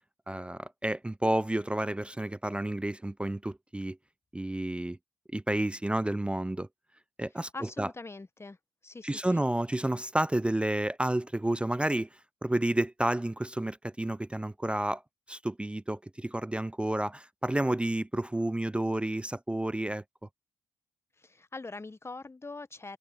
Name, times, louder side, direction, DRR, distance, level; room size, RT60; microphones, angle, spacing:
voice 1, 0.3-4.0 4.3-5.0 5.3-6.7 7.2-7.9 9.0-12.1 12.4-15.0 15.3-20.0, right 1 dB, 10° right, 0.4 m, -30 dB
voice 2, 7.5-8.6 8.8-9.4 21.2-23.0, left 3 dB, 20° left, 1.2 m, -43 dB
hypercardioid pair, 50°, 12 cm